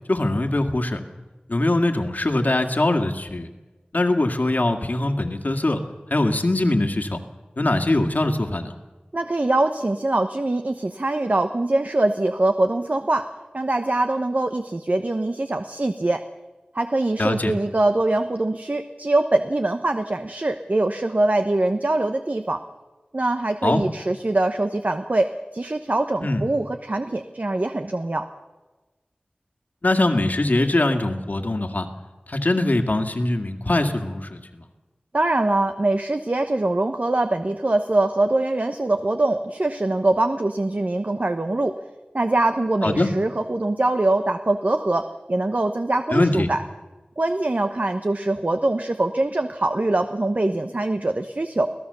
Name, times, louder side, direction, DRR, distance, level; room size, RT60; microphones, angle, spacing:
voice 1, 0.1-1.0 1.5-3.5 3.9-5.8 6.1-7.2 7.6-8.7 17.2-17.5 23.6-23.8 26.2-26.4 29.8-31.9 32.3-34.6 42.8-43.1 46.1-46.5, left 2 dB, 65° left, 5 dB, 2.1 m, -22 dB
voice 2, 9.1-13.3 13.5-16.2 16.7-22.6 23.1-28.3 35.1-41.7 42.1-46.6 47.2-51.7, right 2 dB, 55° right, 7 dB, 1.0 m, -23 dB
26.0 x 17.0 x 6.9 m, 1.2 s
wide cardioid pair, 45°, 3 cm